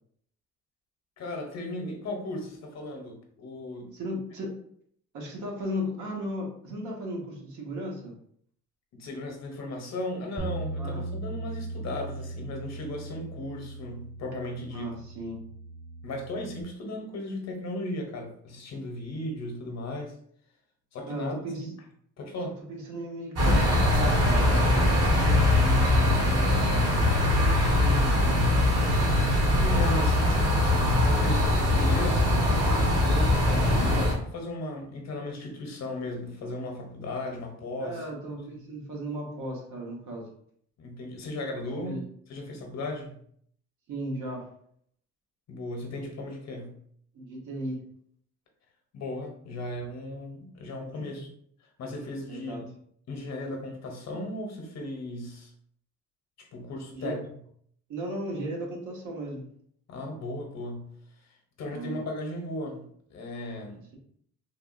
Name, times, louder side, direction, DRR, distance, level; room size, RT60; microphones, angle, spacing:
voice 1, 1.2-3.9 8.9-15.0 16.0-20.2 20.9-21.7 22.2-22.6 29.6-38.0 40.8-42.0 42.3-43.2 45.5-46.8 48.9-51.3 51.8-52.7 53.1-55.5 56.4-57.2 59.9-60.9 61.2-62.8 63.1-63.8, left 1 dB, 60° left, 2 dB, 0.9 m, -36 dB
voice 2, 3.9-4.5 5.1-8.1 10.8-11.0 14.7-15.4 21.1-21.7 22.7-27.2 27.5-28.5 37.8-40.3 41.7-42.0 43.9-44.5 47.1-47.8 50.9-51.2 52.3-52.6 56.9-57.1 57.9-59.5 61.7-62.0, equal, 80° right, -1 dB, 1.0 m, -36 dB
Bass guitar, 10.4-16.6, right 2 dB, 5° right, 0.3 m, -38 dB
sound 1, 23.4-34.1, left 1 dB, 55° right, 1.2 m, -22 dB
3.4 x 2.3 x 2.5 m, 0.65 s
cardioid pair, 90°, 30 cm